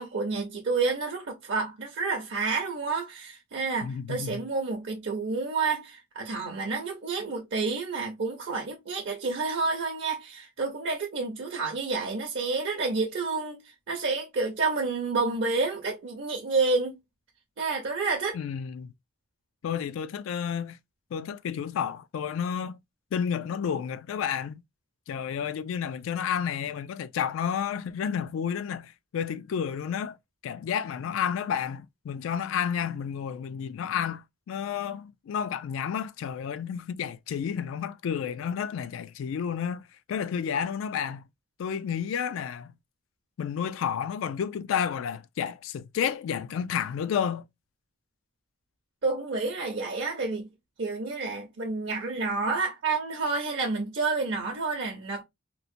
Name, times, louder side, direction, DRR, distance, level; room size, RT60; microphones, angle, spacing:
voice 1, 0.0-13.6 13.9-17.0 17.6-18.4 49.0-50.5 50.8-55.2, right 4 dB, 65° right, 0.6 m, -29 dB
voice 2, 3.8-4.4 18.3-18.9 19.6-20.8 21.1-22.8 23.1-24.6 25.1-30.2 30.4-39.8 40.1-41.2 41.6-42.7 43.4-47.4, left 8 dB, 80° left, 0.3 m, -31 dB
2.9 x 2.1 x 2.5 m
head